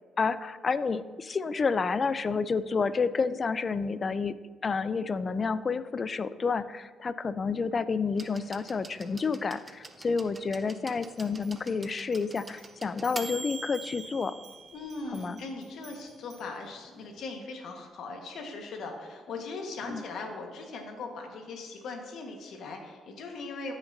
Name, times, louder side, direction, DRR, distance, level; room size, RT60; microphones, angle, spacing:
voice 1, 0.2-14.4 15.1-15.4 19.8-20.0, left 5 dB, 40° left, 15 dB, 0.3 m, -30 dB
sound 1, 8.2-15.9 17.1-17.2, right 3 dB, 20° right, 0.6 m, -44 dB
sound 2, 11.0-16.7, right 7 dB, 70° right, 0.9 m, -58 dB
voice 2, 14.7-23.7, left 3 dB, 70° left, 3 dB, 1.3 m, -39 dB
14.0 x 5.9 x 2.6 m, 1.5 s
cardioid pair, 90°, 0 cm